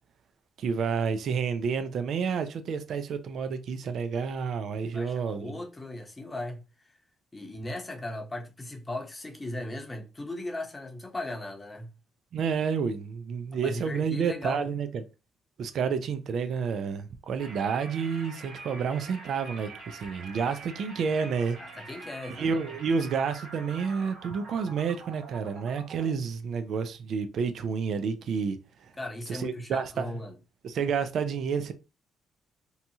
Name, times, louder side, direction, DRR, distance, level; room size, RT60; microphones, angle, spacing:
voice 1, 0.6-5.6 12.3-15.0 15.6-21.6 22.3-28.9 29.3-30.2 30.6-31.7, right 6 dB, 65° right, 0.4 m, -30 dB
voice 2, 4.9-6.6 7.3-11.9 13.6-14.6 20.4-20.5 21.6-22.7 29.0-30.3, left 1 dB, 20° left, 0.8 m, -37 dB
sound 1, 17.4-26.1, right 3 dB, 90° right, 1.4 m, -45 dB
2.7 x 2.3 x 2.7 m
cardioid pair, 90°, 0 cm